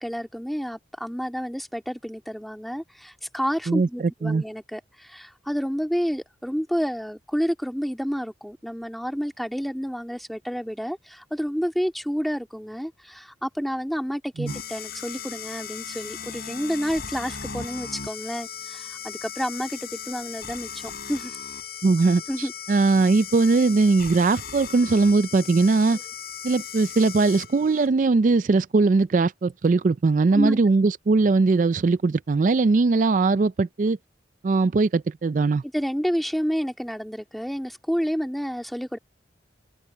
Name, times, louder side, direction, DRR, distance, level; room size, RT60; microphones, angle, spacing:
voice 1, 0.0-21.4 22.3-22.5 25.9-26.0 30.3-30.6 35.7-39.0, equal, ahead, 2.1 m, -29 dB
voice 2, 3.7-4.4 14.4-14.5 21.8-26.0 26.4-34.0 34.4-35.6, right 3 dB, 45° right, 0.3 m, -20 dB
sound 1, 14.5-27.9, left 7 dB, 55° left, 4.6 m, -37 dB
open air
head